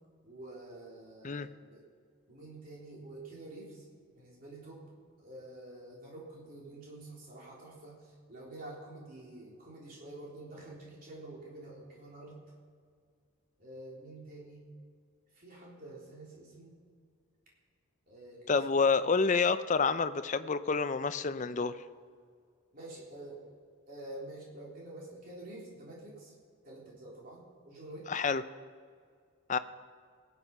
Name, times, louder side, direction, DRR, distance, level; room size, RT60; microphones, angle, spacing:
voice 1, 0.2-1.8 2.3-3.9 4.1-4.9 5.2-12.4 13.6-14.6 15.3-16.7 18.1-18.6 22.7-23.4 23.9-26.3 26.6-28.1, right 2 dB, 40° right, -4 dB, 3.7 m, -48 dB
voice 2, 18.5-21.8 28.1-28.4 29.5-29.6, left 4 dB, 35° left, 13 dB, 0.4 m, -28 dB
19.5 x 8.0 x 5.5 m, 2.1 s
head